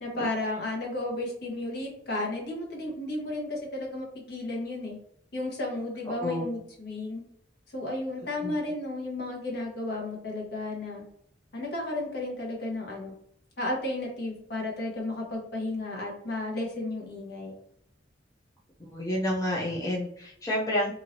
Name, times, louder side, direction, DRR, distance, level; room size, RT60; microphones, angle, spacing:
voice 1, 0.0-5.0 5.3-7.2 7.7-11.0 11.5-13.1 13.6-17.6, left 2 dB, 60° left, -1 dB, 1.1 m, -33 dB
voice 2, 18.8-20.9, left 1 dB, 20° left, -4 dB, 0.6 m, -29 dB
3.0 x 2.8 x 2.6 m, 0.68 s
head